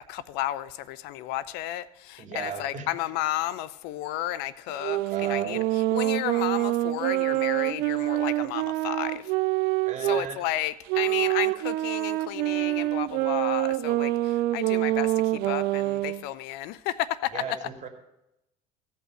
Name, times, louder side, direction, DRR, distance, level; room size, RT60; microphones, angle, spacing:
voice 1, 0.1-5.6 5.9-9.2 10.0-17.7, left 14 dB, 65° left, 17 dB, 0.6 m, -32 dB
voice 2, 2.2-2.9 5.1-5.6 9.9-10.4 17.3-17.9, right 6 dB, 40° right, 5 dB, 2.5 m, -36 dB
sound 1, 4.8-10.3 10.9-16.2, right 17 dB, 60° right, 0.5 m, -26 dB
15.0 x 5.6 x 7.6 m, 0.88 s
hypercardioid pair, 75°, 18 cm